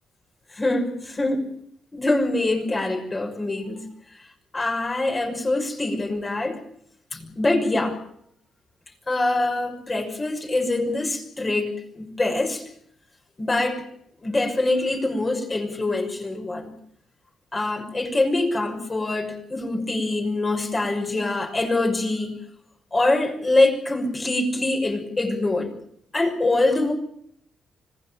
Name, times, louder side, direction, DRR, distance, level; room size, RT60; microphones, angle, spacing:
voice 1, 0.5-1.7 1.9-4.3 4.5-6.6 7.1-8.0 9.1-12.7 13.4-13.8 14.2-16.7 17.5-22.4 22.9-25.7 26.1-26.9, left 2 dB, 25° left, 3 dB, 6.1 m, -24 dB
26.0 x 19.0 x 7.3 m, 0.69 s
cardioid pair, 100°, 0 cm